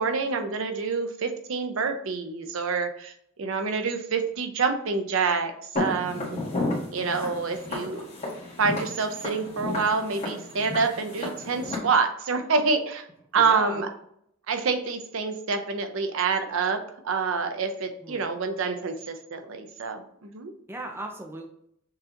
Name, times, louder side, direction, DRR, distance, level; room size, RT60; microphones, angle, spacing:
voice 1, 0.0-3.1 3.4-6.4 6.9-8.1 8.6-13.1 13.3-13.9 14.5-20.5, right 4 dB, 75° right, 7 dB, 0.6 m, -27 dB
Walk footsteps, 5.8-11.8, left 2 dB, 35° left, 1.6 m, -33 dB
voice 2, 13.3-13.9 18.0-18.3 20.7-21.5, right 1 dB, 10° right, 2 dB, 0.5 m, -37 dB
6.5 x 2.8 x 2.5 m, 0.71 s
head